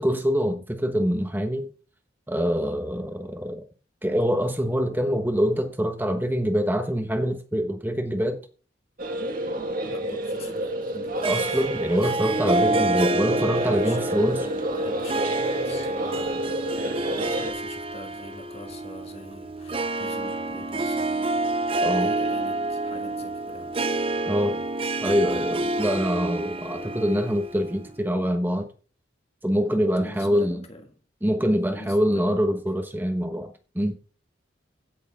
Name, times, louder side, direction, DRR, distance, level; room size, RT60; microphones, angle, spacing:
voice 1, 0.0-1.7 2.3-3.6 4.0-8.4 11.2-14.5 21.8-22.1 24.3-24.6 25.0-28.7 29.4-30.6 31.2-34.0, equal, 10° right, 1.1 m, -25 dB
sound 1, 9.0-17.5, right 1 dB, 45° right, 1.9 m, -29 dB
voice 2, 9.8-11.6 12.0-12.2 12.6-23.8 29.7-31.0 31.6-32.4, left 1 dB, 30° left, 1.6 m, -43 dB
Harp, 11.2-28.0, right 2 dB, 30° right, 0.6 m, -28 dB
16.5 x 6.7 x 3.7 m
head